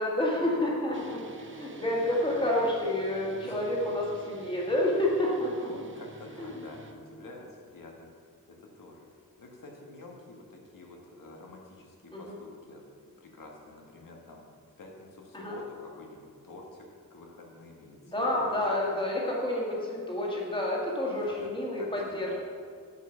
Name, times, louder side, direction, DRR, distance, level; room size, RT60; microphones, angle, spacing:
voice 1, 0.0-5.7 6.4-6.5 12.1-12.4 15.3-15.6 18.0-22.3, left 1 dB, 15° left, -4 dB, 1.9 m, -29 dB
sound 1, 0.9-6.9, right 4 dB, 35° right, 0.7 m, -49 dB
voice 2, 1.6-2.2 3.4-3.7 5.6-12.8 13.2-14.5 14.8-18.6 21.2-21.3 21.8-22.3, left 2 dB, 70° left, 0 dB, 1.7 m, -48 dB
8.5 x 5.5 x 7.1 m, 2.1 s
wide cardioid pair, 170°, 34 cm